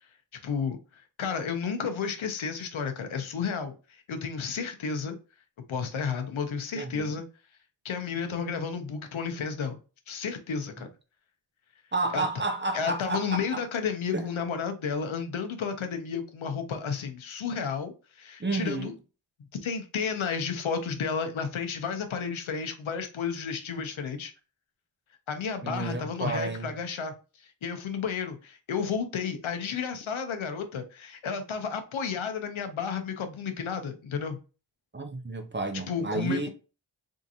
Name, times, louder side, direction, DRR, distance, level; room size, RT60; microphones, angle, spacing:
voice 1, 0.4-5.2 5.7-7.2 7.8-9.8 10.1-10.9 12.1-12.2 12.7-18.9 19.5-24.3 25.3-27.1 27.4-34.4 35.9-36.5, left 6 dB, 80° left, 0.8 m, -32 dB
voice 2, 11.9-13.6 14.1-14.2 18.4-18.9 25.6-26.7 34.9-36.5, right 3 dB, 25° right, 0.5 m, -31 dB
3.6 x 2.5 x 2.7 m
wide cardioid pair, 70°, 47 cm